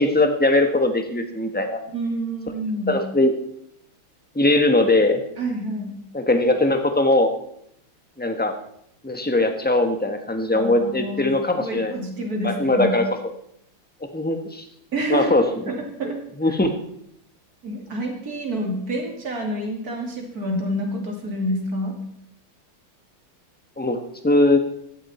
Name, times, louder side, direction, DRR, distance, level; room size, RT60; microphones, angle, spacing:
voice 1, 0.0-1.8 2.9-3.3 4.3-5.2 6.1-7.3 8.2-8.5 9.0-11.9 12.4-13.0 14.1-14.6 15.1-15.5 16.4-16.8 23.8-24.0 24.2-24.6, left 2 dB, 5° left, 6 dB, 0.7 m, -20 dB
voice 2, 1.9-3.0 5.4-5.9 10.5-12.9 14.9-16.6 17.6-21.9, right 1 dB, 45° right, 1 dB, 3.1 m, -28 dB
16.5 x 12.0 x 4.3 m, 0.73 s
omnidirectional pair, 2.4 m